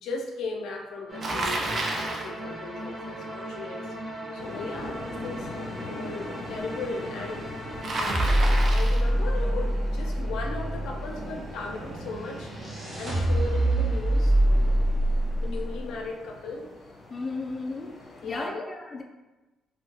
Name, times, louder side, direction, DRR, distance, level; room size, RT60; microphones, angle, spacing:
voice 1, 0.0-3.9 4.3-5.5 5.8-7.5 8.0-12.5 12.9-14.9 15.4-16.6 18.2-18.7, left 3 dB, 85° left, 1 dB, 0.5 m, -37 dB
sound 1, 1.1-16.1, right 1 dB, 30° right, 1.1 m, -28 dB
Bicycle, 1.2-2.3 7.8-9.1, right 2 dB, 45° right, 0.5 m, -30 dB
sound 2, 4.4-18.4, left 2 dB, 55° left, 0.7 m, -43 dB
voice 2, 17.1-17.9 18.2-19.0, left 3 dB, 25° left, 1 dB, 0.4 m, -34 dB
2.9 x 2.7 x 2.9 m, 1.1 s
cardioid pair, 90°, 0 cm